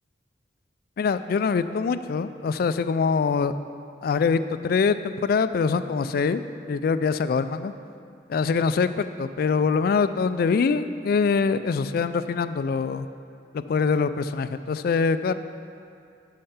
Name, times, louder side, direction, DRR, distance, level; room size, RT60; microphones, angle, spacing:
voice 1, 1.0-3.5 4.0-6.4 6.7-7.7 8.3-13.1 13.5-15.3, left 5 dB, 55° left, 12 dB, 0.3 m, -24 dB
10.0 x 5.7 x 5.6 m, 2.4 s
head